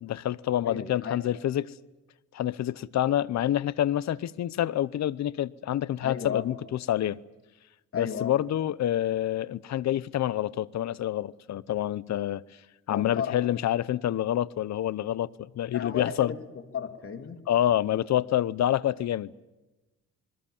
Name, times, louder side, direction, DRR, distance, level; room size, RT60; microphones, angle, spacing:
voice 1, 0.0-1.7 2.3-6.5 6.9-7.2 7.9-12.4 12.9-16.3 17.5-19.4, left 12 dB, 65° left, 0.8 m, -27 dB
voice 2, 0.6-1.2 6.0-6.5 7.9-8.4 12.9-13.4 15.7-16.5 16.7-17.4, left 7 dB, 45° left, 3.2 m, -34 dB
28.0 x 21.5 x 7.2 m
cardioid pair, 90°, 30 cm